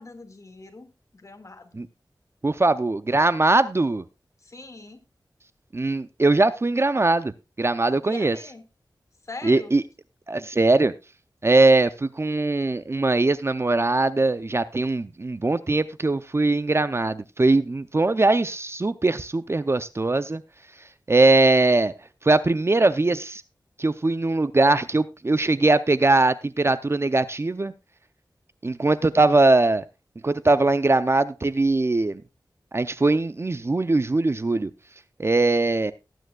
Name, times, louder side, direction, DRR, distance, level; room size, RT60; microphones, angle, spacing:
voice 1, 0.0-1.7 4.4-5.0 8.0-8.7 9.2-9.8, left 3 dB, 40° left, 7 dB, 2.0 m, -42 dB
voice 2, 2.4-4.0 5.7-8.4 9.4-9.8 10.3-10.9 11.4-20.4 21.1-21.9 22.2-23.4 23.8-27.7 28.6-29.8 30.2-32.2 32.7-34.7 35.2-35.9, right 2 dB, 35° right, 14 dB, 0.6 m, -21 dB
19.0 x 9.2 x 2.3 m, 0.26 s
wide cardioid pair, 90°, 8 cm